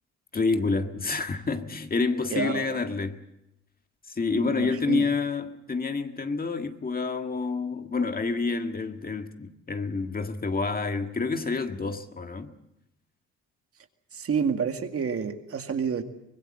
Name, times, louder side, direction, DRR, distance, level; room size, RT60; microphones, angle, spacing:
voice 1, 0.3-3.2 4.1-12.5, left 4 dB, 30° left, 1.8 m, -28 dB
voice 2, 2.3-2.8 4.3-5.1 14.1-16.0, right 6 dB, 50° right, 2.1 m, -29 dB
24.5 x 20.5 x 7.8 m
cardioid pair, 90°, 30 cm